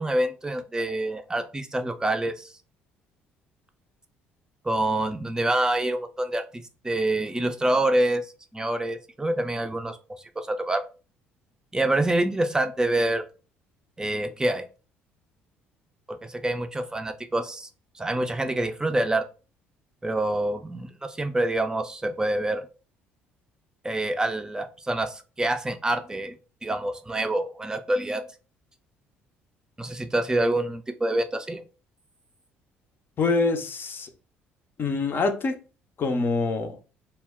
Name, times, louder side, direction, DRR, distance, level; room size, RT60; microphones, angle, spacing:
voice 1, 0.0-2.5 4.6-8.2 8.5-10.0 10.4-10.8 11.7-13.2 14.0-14.6 16.1-17.7 18.0-19.3 20.0-22.7 23.8-26.3 26.6-28.2 29.8-31.6, right 1 dB, 15° right, 0.4 m, -26 dB
voice 2, 33.2-34.1 34.8-35.6 36.0-36.8, left 3 dB, 45° left, 0.5 m, -25 dB
2.1 x 2.1 x 3.5 m
hypercardioid pair, 55°, 5 cm